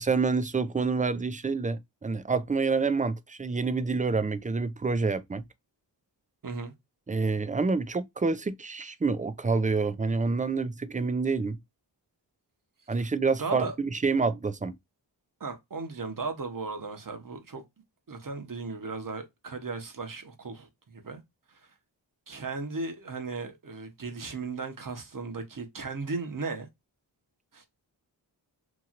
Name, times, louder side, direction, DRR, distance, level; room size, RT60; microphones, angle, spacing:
voice 1, 0.0-5.4 7.1-11.6 12.9-14.7, right 4 dB, 20° right, 0.4 m, -27 dB
voice 2, 6.4-6.7 13.0-13.1 13.4-13.8 15.4-17.6 18.1-21.2 21.5-21.6 22.3-26.7 27.5-27.7, right 4 dB, 45° right, 1.0 m, -36 dB
3.0 x 2.7 x 2.4 m
cardioid pair, 50°, 44 cm